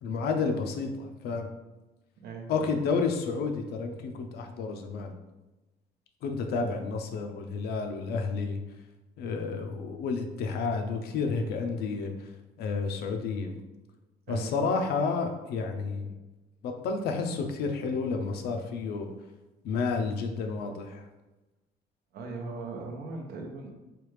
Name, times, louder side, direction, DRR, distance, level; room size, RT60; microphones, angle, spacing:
voice 1, 0.0-1.5 2.5-5.1 6.2-8.6 9.2-12.2 12.6-13.5 14.3-16.1 16.6-19.1 19.6-21.0, left 4 dB, 70° left, 5 dB, 0.5 m, -30 dB
voice 2, 2.2-2.5 14.3-14.6 18.4-18.9 22.1-23.7, right 3 dB, 65° right, 2 dB, 0.7 m, -39 dB
3.3 x 2.3 x 3.1 m, 1.1 s
cardioid pair, 110°, 17 cm